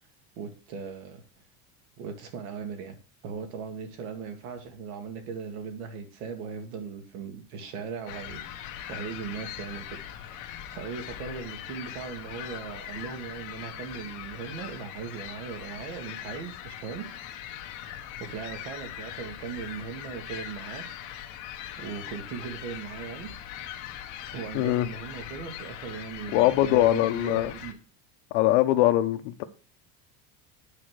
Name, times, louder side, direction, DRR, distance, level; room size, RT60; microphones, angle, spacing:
voice 1, 0.4-1.2 2.0-3.0 3.2-17.1 17.9-20.8 21.8-23.3 24.3-27.8, right 6 dB, 85° right, 2.2 m, -38 dB
sound 1, 8.1-27.7, left 11 dB, 45° left, 1.1 m, -41 dB
voice 2, 24.5-24.9 26.3-27.5 28.3-29.4, left 14 dB, 65° left, 1.0 m, -22 dB
8.7 x 4.4 x 6.3 m
cardioid pair, 165°, 42 cm